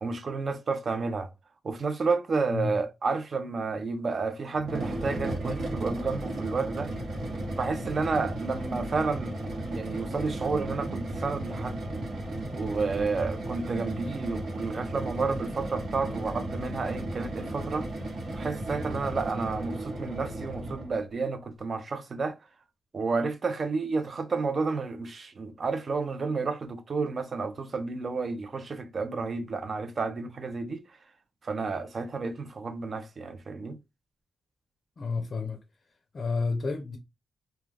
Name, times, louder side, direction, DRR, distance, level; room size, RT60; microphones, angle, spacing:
voice 1, 0.0-1.3 1.6-6.9 7.5-9.3 9.6-11.8 12.5-17.9 18.3-22.4 22.9-30.8 31.4-33.8, right 4 dB, 45° right, 0.5 m, -31 dB
sound 1, 4.6-21.0, right 1 dB, 75° right, 1.0 m, -35 dB
voice 2, 35.0-35.6 36.1-37.0, left 4 dB, 45° left, 0.4 m, -30 dB
2.3 x 2.2 x 3.2 m
cardioid pair, 100°, 0 cm